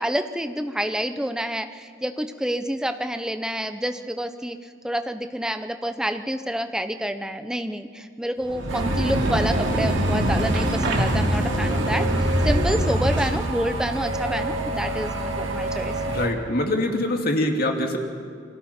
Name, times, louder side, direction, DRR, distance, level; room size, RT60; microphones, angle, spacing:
voice 1, 0.0-4.6 4.8-16.0, equal, 5° right, 8 dB, 0.8 m, -28 dB
sound 1, 8.4-13.5, equal, 70° right, 3.0 m, -23 dB
sound 2, 8.7-16.3, right 2 dB, 85° right, 2.5 m, -29 dB
voice 2, 16.1-18.0, left 1 dB, 50° left, 2 dB, 2.5 m, -24 dB
29.0 x 22.5 x 4.4 m, 2.3 s
head